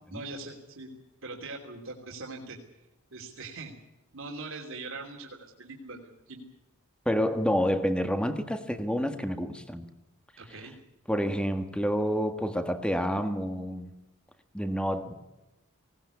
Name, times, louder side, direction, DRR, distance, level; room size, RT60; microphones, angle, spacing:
voice 1, 0.1-0.9 1.2-2.6 3.1-3.7 4.1-6.4 10.4-10.7, right 3 dB, 65° right, 0 dB, 3.0 m, -41 dB
voice 2, 7.0-9.8 11.1-13.9 14.5-15.1, equal, 5° left, 7 dB, 1.6 m, -28 dB
19.5 x 18.5 x 8.3 m, 0.99 s
head